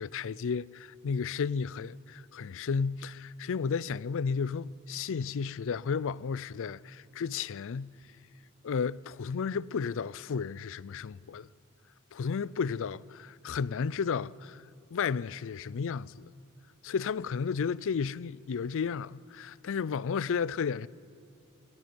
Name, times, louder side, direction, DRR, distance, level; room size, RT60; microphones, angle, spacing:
voice 1, 0.0-7.9 8.6-11.5 12.1-14.6 14.9-16.3 16.8-20.9, left 6 dB, 65° left, 0.4 m, -33 dB
18.5 x 18.0 x 9.5 m
head